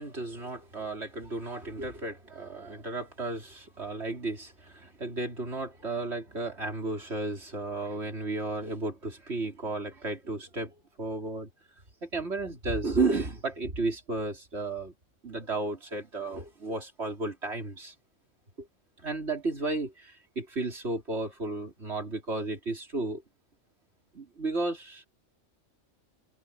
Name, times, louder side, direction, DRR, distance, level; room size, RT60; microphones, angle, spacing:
voice 1, 0.0-11.5 12.0-14.9 15.2-17.9 18.6-18.7 19.0-23.2 24.1-25.1, right 3 dB, 60° right, 4.2 m, -33 dB
omnidirectional pair, 1.3 m